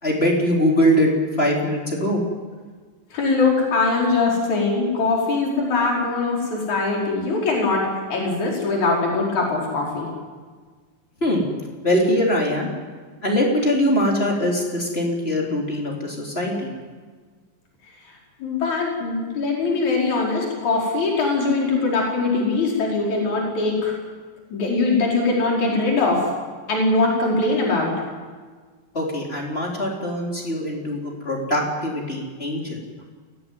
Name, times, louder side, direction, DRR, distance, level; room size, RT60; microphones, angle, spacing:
voice 1, 0.0-1.1 1.4-2.2 11.2-11.4 11.8-12.7 13.2-16.7 28.9-32.8, equal, 15° left, -1 dB, 4.1 m, -22 dB
voice 2, 3.1-7.8 8.1-10.1 18.4-23.9 24.5-26.3 26.7-27.9, left 3 dB, 55° left, -2 dB, 6.1 m, -21 dB
23.5 x 17.5 x 9.5 m, 1.5 s
omnidirectional pair, 4.1 m